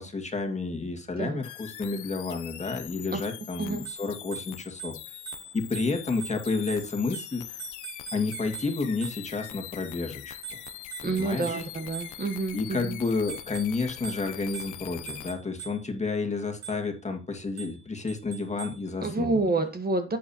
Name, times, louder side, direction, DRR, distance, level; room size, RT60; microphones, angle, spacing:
voice 1, 0.0-5.2 5.5-7.6 8.1-10.4 11.0-11.6 12.5-19.4, left 3 dB, 25° left, 3 dB, 2.0 m, -31 dB
sound 1, 1.4-15.3, left 13 dB, 80° left, 0.9 m, -43 dB
Bicycle bell, 3.7-9.5 10.4-12.5 13.1-16.0 16.6-17.0 17.6-18.9, right 7 dB, 60° right, 5.5 m, -44 dB
voice 2, 11.0-13.0 19.0-20.2, right 3 dB, 30° right, 7 dB, 1.3 m, -28 dB
11.0 x 8.6 x 2.9 m, 0.32 s
cardioid pair, 90°, 30 cm